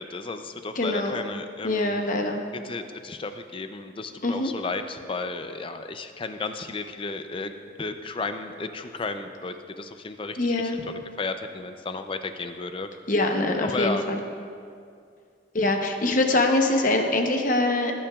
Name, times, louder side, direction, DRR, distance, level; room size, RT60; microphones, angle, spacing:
voice 1, 0.0-2.1 2.6-7.5 7.8-10.7 11.2-12.9 13.6-14.0, left 3 dB, 30° left, 8 dB, 0.5 m, -33 dB
voice 2, 0.8-1.2 1.6-2.4 4.2-4.5 10.4-10.8 13.1-14.2 15.5-17.9, left 2 dB, 45° left, 3 dB, 0.9 m, -23 dB
17.0 x 8.7 x 2.4 m, 2.3 s
head